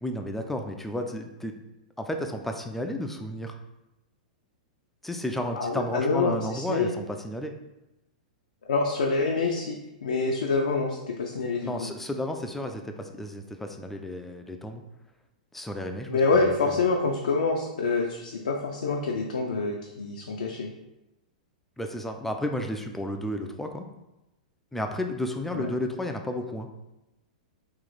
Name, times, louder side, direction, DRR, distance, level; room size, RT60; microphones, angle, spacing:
voice 1, 0.0-1.5 2.0-3.5 5.0-7.5 11.6-14.8 15.5-16.7 21.8-23.9 24.7-26.7, left 1 dB, 5° left, 4 dB, 0.4 m, -32 dB
voice 2, 5.5-6.9 8.7-11.9 16.1-20.7 25.5-25.7, left 4 dB, 75° left, 0 dB, 0.4 m, -26 dB
3.0 x 2.5 x 3.9 m, 0.95 s
hypercardioid pair, 110°, 4 cm